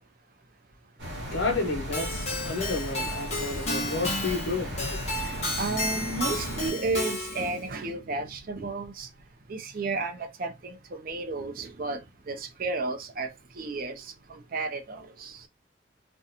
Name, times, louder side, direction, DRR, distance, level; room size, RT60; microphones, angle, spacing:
voice 1, 1.0-5.0, left 3 dB, 75° left, 0.9 m, -31 dB
sound 1, 1.0-6.7, equal, 65° right, 1.1 m, -36 dB
Keyboard (musical), 1.9-7.6, left 2 dB, 35° left, 0.9 m, -32 dB
voice 2, 4.9-9.1 9.5-12.0 12.3-15.5, right 3 dB, 50° right, 0.5 m, -33 dB
2.6 x 2.2 x 2.7 m
head